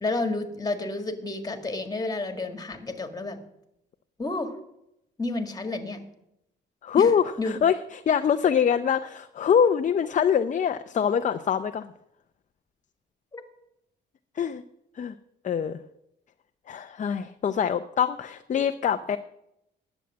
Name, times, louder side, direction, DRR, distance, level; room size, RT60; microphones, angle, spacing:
voice 1, 0.0-3.4 4.2-4.5 5.2-6.0 7.0-7.1 7.4-7.6 13.3-13.4, left 2 dB, 20° left, 7 dB, 1.7 m, -30 dB
voice 2, 6.8-11.9 14.4-14.6 15.0-15.2 15.4-15.8 16.7-19.2, left 7 dB, 40° left, 9 dB, 0.5 m, -24 dB
10.5 x 7.1 x 8.4 m, 0.81 s
cardioid pair, 90°, 20 cm